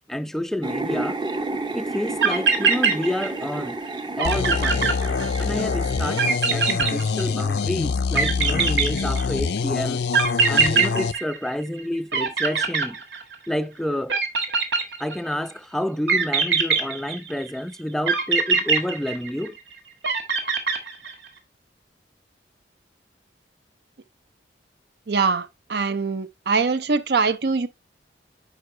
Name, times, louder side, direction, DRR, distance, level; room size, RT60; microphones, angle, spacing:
voice 1, 0.1-1.2 1.7-3.8 4.2-4.9 5.4-10.0 10.5-13.0 13.5-14.2 15.0-19.6, left 1 dB, ahead, 0.3 m, -29 dB
sound 1, 0.6-6.4, right 2 dB, 25° right, 0.7 m, -31 dB
sound 2, 1.9-2.0 2.2-3.6 3.9-4.0 4.2-5.6 6.2-7.6 8.2-9.5 10.1-11.8 12.1-13.5 14.1-15.3 16.1-17.5 18.1-19.6 20.0-21.3, right 5 dB, 85° right, 1.6 m, -22 dB
sound 3, 4.2-11.1, left 5 dB, 70° left, 0.4 m, -25 dB
voice 2, 25.1-27.7, right 4 dB, 65° right, 0.6 m, -23 dB
9.9 x 4.9 x 3.1 m
head